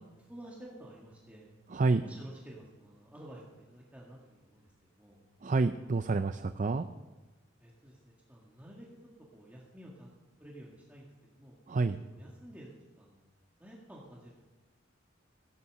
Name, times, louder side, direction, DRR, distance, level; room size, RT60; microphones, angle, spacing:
voice 1, 0.0-1.5 1.9-5.2 7.6-10.1 10.4-11.5 12.1-13.3 13.6-14.3, right 1 dB, 10° right, -4 dB, 1.8 m, -51 dB
voice 2, 1.7-2.0 5.4-6.9 11.7-12.0, right 3 dB, 40° right, 10 dB, 0.5 m, -28 dB
17.0 x 8.5 x 6.5 m, 1.2 s
head